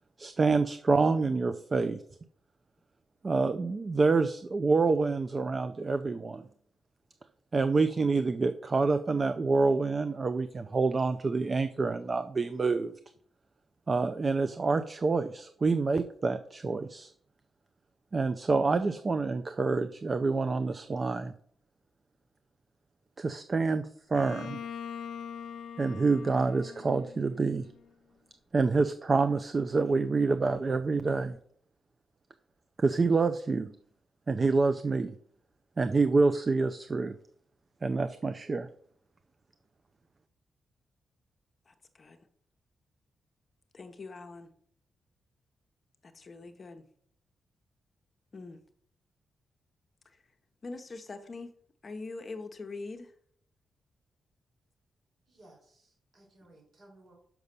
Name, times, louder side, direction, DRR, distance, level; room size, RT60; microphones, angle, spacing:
voice 1, 0.2-2.0 3.2-6.4 7.5-12.9 13.9-17.1 18.1-21.3 23.2-24.6 25.8-27.7 28.5-31.4 32.8-33.7 34.3-35.2 35.8-37.2 37.8-38.7, right 4 dB, 35° right, 9 dB, 0.4 m, -27 dB
Bowed string instrument, 24.2-27.9, left 7 dB, 80° left, 0.4 m, -43 dB
voice 2, 41.7-42.2 43.7-44.5 46.0-46.8 48.3-48.6 50.6-51.5 51.8-53.1, left 3 dB, 40° left, 7 dB, 0.8 m, -43 dB
voice 3, 55.3-57.1, right 1 dB, 55° right, 1 dB, 4.1 m, -58 dB
6.0 x 5.4 x 6.7 m, 0.63 s
cardioid pair, 105°, 0 cm